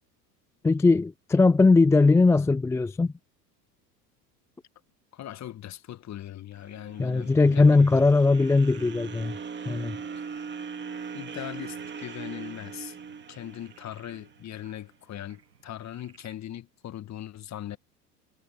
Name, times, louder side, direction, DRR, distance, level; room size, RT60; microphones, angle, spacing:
voice 1, 0.6-3.1 7.0-9.3 9.7-10.0, left 3 dB, 5° left, 0.4 m, -20 dB
voice 2, 5.1-7.9 10.2-10.3 11.1-13.0 13.3-17.8, left 12 dB, 35° left, 2.0 m, -40 dB
sound 1, 6.6-14.8, right 6 dB, 25° right, 2.6 m, -40 dB
Frog, 7.7-16.4, right 5 dB, 85° right, 7.2 m, -58 dB
hypercardioid pair, 85°, 48 cm